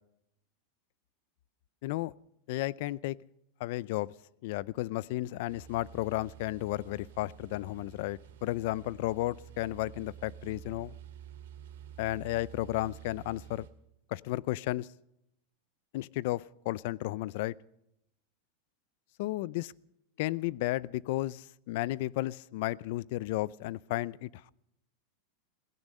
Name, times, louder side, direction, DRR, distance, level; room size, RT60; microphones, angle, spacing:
voice 1, 1.8-2.1 2.5-3.2 3.6-4.1 4.4-10.9 12.0-13.7 14.1-14.9 15.9-17.6 19.2-19.7 20.2-24.5, left 17 dB, 55° left, 0.5 m, -33 dB
sound 1, 5.5-13.7, right 10 dB, 75° right, 2.2 m, -50 dB
16.5 x 16.5 x 5.4 m
supercardioid pair, 155°, 0 cm